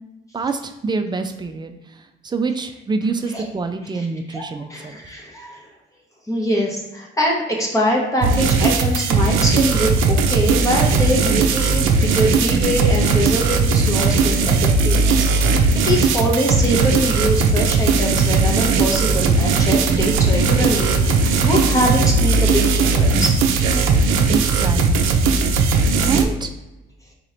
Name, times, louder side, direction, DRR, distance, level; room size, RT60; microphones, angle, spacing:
voice 1, 0.3-5.0 24.3-25.3 25.6-26.5, right 4 dB, 20° right, 7 dB, 0.4 m, -26 dB
voice 2, 3.9-5.7 6.3-23.4, equal, 15° left, -2 dB, 0.9 m, -23 dB
becop w.i.p piece, 8.2-26.2, right 4 dB, 90° right, 0.4 m, -17 dB
Bowed string instrument, 18.7-23.6, left 2 dB, 65° left, 0.5 m, -36 dB
4.1 x 3.0 x 2.5 m, 1.0 s
cardioid pair, 90°, 20 cm